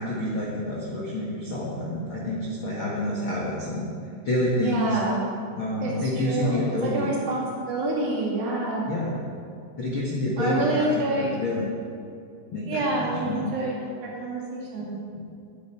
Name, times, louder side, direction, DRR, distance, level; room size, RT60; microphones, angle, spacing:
voice 1, 0.0-3.9 4.2-5.0 5.5-7.1 8.9-9.2 9.8-10.9 11.1-11.7 12.5-13.5 14.8-14.9 15.1-15.2, left 1 dB, 55° left, -5 dB, 1.4 m, -28 dB
voice 2, 4.6-5.2 5.8-6.7 6.9-8.9 10.4-11.3 12.7-15.0, right 2 dB, 65° right, -5 dB, 4.4 m, -27 dB
12.5 x 11.0 x 4.5 m, 2.3 s
omnidirectional pair, 4.8 m